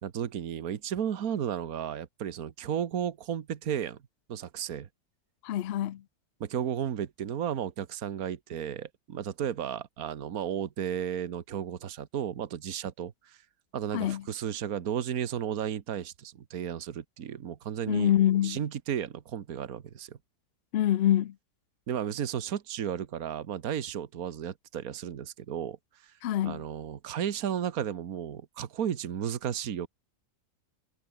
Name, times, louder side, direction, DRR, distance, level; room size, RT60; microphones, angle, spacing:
voice 1, 0.0-4.0 4.3-4.9 6.4-13.4 13.7-18.1 18.4-20.2 21.9-25.8 26.0-26.1 26.4-29.9, right 9 dB, 65° right, 1.6 m, -34 dB
voice 2, 5.4-6.0 13.9-14.2 17.9-18.6 20.7-21.3 26.2-26.6, left 12 dB, 85° left, 0.5 m, -25 dB
omnidirectional pair, 1.7 m